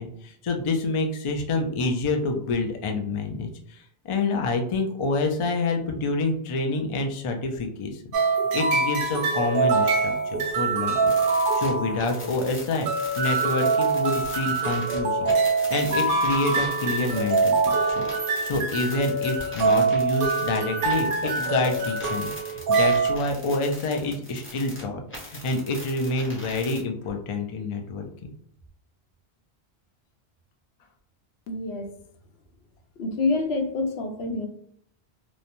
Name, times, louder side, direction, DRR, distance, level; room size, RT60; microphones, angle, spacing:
voice 1, 0.0-8.0 8.5-15.3 15.7-28.0, left 3 dB, 50° left, 3 dB, 0.3 m, -28 dB
sound 1, 8.1-23.2, right 4 dB, 65° right, 0.7 m, -24 dB
sound 2, 11.1-15.0 15.2-24.8 25.1-26.8, equal, 15° left, 0.7 m, -41 dB
voice 2, 31.5-31.9 33.0-34.5, left 3 dB, 90° left, 4 dB, 0.8 m, -27 dB
2.9 x 2.1 x 2.5 m, 0.65 s
omnidirectional pair, 1.1 m